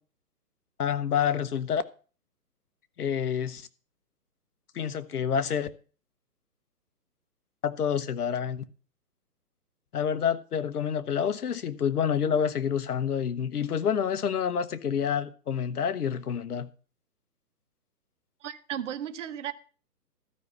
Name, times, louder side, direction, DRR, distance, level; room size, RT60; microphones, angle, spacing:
voice 1, 0.8-1.8 3.0-3.7 4.7-5.7 7.6-8.6 9.9-16.7, left 8 dB, 65° left, 1.2 m, -28 dB
voice 2, 18.4-19.5, right 10 dB, 50° right, 0.8 m, -35 dB
13.0 x 5.6 x 7.9 m
hypercardioid pair, 150°, 49 cm